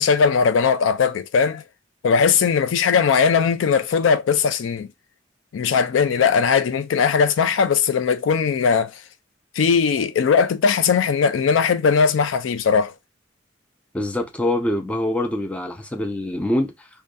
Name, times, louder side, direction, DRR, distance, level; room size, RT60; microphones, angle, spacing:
voice 1, 0.0-1.6 2.0-4.9 5.5-9.0 9.5-12.9, left 6 dB, 75° left, 0.4 m, -19 dB
voice 2, 13.9-16.9, left 1 dB, 5° left, 0.4 m, -24 dB
2.6 x 2.2 x 2.2 m
head